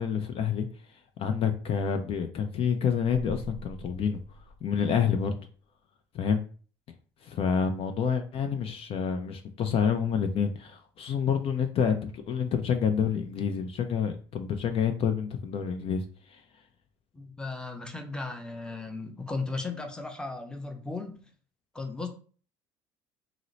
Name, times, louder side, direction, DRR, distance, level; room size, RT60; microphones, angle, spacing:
voice 1, 0.0-4.2 4.6-5.3 6.1-6.4 7.2-16.4, left 7 dB, 50° left, 0.5 m, -28 dB
sound 1, 3.1-5.3, right 1 dB, 85° left, 1.0 m, -45 dB
voice 2, 17.1-21.3 21.7-22.1, left 3 dB, 5° left, 0.7 m, -36 dB
2.8 x 2.0 x 3.9 m
supercardioid pair, 80°, 13 cm